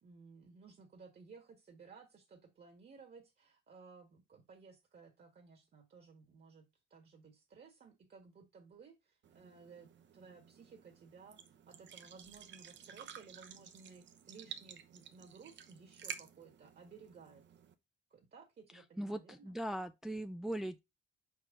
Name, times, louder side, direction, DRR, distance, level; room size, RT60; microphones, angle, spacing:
voice 1, 0.0-6.6 6.9-17.4 18.1-19.6, right 5 dB, 50° right, 1.8 m, -57 dB
sound 1, 9.2-17.7, right 8 dB, 65° right, 1.0 m, -52 dB
voice 2, 19.0-20.8, right 1 dB, ahead, 0.4 m, -39 dB
5.4 x 4.7 x 5.0 m
cardioid pair, 90°, 20 cm